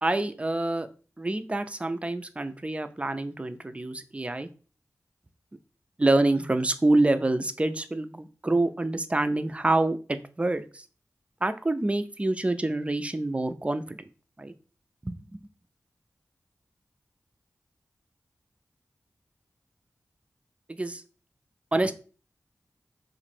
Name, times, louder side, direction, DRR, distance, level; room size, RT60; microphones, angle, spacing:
voice 1, 0.0-0.9 1.2-4.5 6.0-10.6 11.4-14.0 14.4-14.5 15.0-15.2 20.7-21.0 21.7-21.9, right 2 dB, 20° right, 10 dB, 0.4 m, -26 dB
3.0 x 2.5 x 4.3 m, 0.37 s
cardioid pair, 50°, 6 cm